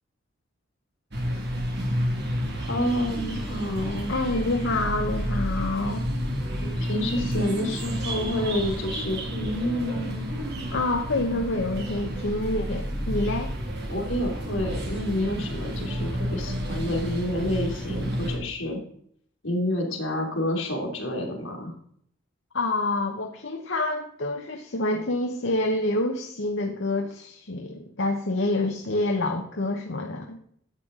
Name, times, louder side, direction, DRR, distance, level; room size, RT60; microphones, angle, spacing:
sound 1, 1.1-18.4, equal, 55° right, 2.3 m, -30 dB
voice 1, 2.6-4.1 6.6-10.3 13.9-18.8 19.4-21.7, left 1 dB, 85° left, 0 dB, 2.9 m, -29 dB
voice 2, 4.1-6.1 10.7-13.5 22.5-30.4, left 2 dB, 65° left, 2 dB, 1.0 m, -27 dB
11.5 x 7.9 x 3.8 m, 0.65 s
head